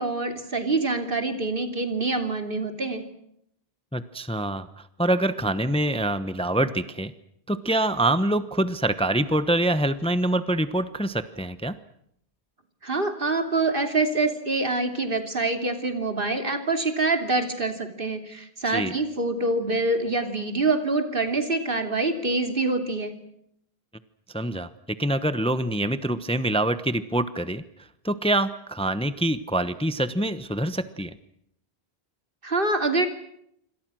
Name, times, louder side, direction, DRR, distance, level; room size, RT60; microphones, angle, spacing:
voice 1, 0.0-3.0 12.8-23.1 32.4-33.1, right 3 dB, 60° right, 6 dB, 3.2 m, -25 dB
voice 2, 3.9-7.1 7.5-11.7 18.7-18.9 24.3-24.7 25.0-27.6 28.0-31.1, right 1 dB, 5° left, 12 dB, 0.9 m, -25 dB
27.0 x 25.5 x 6.3 m, 0.73 s
omnidirectional pair, 1.1 m